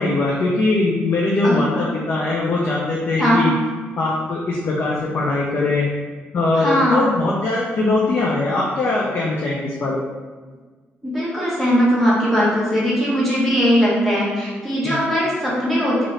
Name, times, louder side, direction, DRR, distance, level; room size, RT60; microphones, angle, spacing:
voice 1, 0.0-3.5 4.0-5.9 6.3-10.0 14.8-14.9, left 2 dB, 55° left, -4 dB, 0.5 m, -21 dB
voice 2, 1.4-1.8 3.2-3.4 6.5-7.0 11.0-16.0, equal, 5° left, -8 dB, 1.1 m, -19 dB
2.7 x 2.6 x 3.1 m, 1.4 s
cardioid pair, 90°, 4 cm